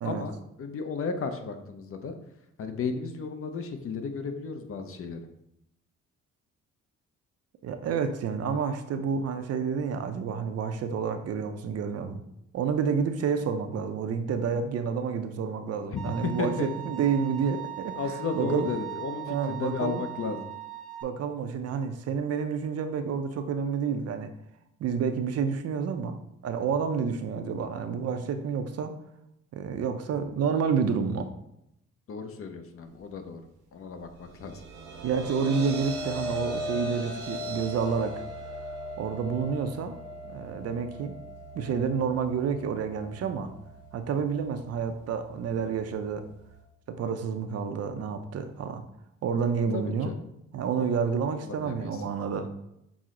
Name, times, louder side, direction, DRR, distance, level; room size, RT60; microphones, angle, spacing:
voice 1, 0.0-2.1 2.6-5.2 15.9-16.7 18.0-20.5 32.1-33.4 33.7-34.6 49.6-50.1 50.8-51.0 51.3-52.0, left 5 dB, 50° left, 7 dB, 0.6 m, -34 dB
voice 2, 7.6-12.2 12.5-18.0 18.4-18.7 19.3-20.0 21.0-24.3 24.8-26.2 26.4-28.9 29.5-31.3 35.0-38.2 39.0-39.9 40.2-41.1 41.5-43.5 43.9-46.3 46.9-48.8 49.2-50.1 50.5-52.5, right 6 dB, 55° right, 8 dB, 0.5 m, -29 dB
Bowed string instrument, 16.0-21.0, right 16 dB, ahead, 0.5 m, -40 dB
sound 1, 34.3-46.6, equal, 80° right, 0.9 m, -39 dB
6.0 x 2.0 x 3.7 m, 0.80 s
cardioid pair, 90°, 30 cm